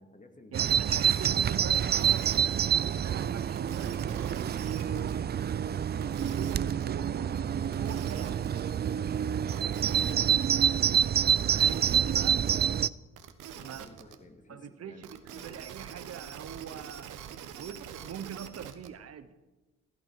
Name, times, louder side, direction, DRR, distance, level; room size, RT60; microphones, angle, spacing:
voice 1, 0.0-1.0 11.6-11.7 12.1-12.4 13.5-15.6, left 2 dB, 25° left, 2.4 m, -54 dB
Bird vocalization bird call bird song, 0.5-12.9, right 8 dB, 35° right, 0.4 m, -27 dB
voice 2, 0.5-5.3 6.2-8.8 11.4-12.4 13.6-13.9 14.5-19.4, right 8 dB, 55° right, 1.1 m, -43 dB
sound 1, 1.8-2.7 3.5-5.1 6.0-6.8 7.7-8.6 9.5-10.4 11.3-12.3 13.1-14.1 15.0-18.9, right 9 dB, 90° right, 1.4 m, -45 dB
16.0 x 15.5 x 4.8 m
cardioid pair, 90°, 30 cm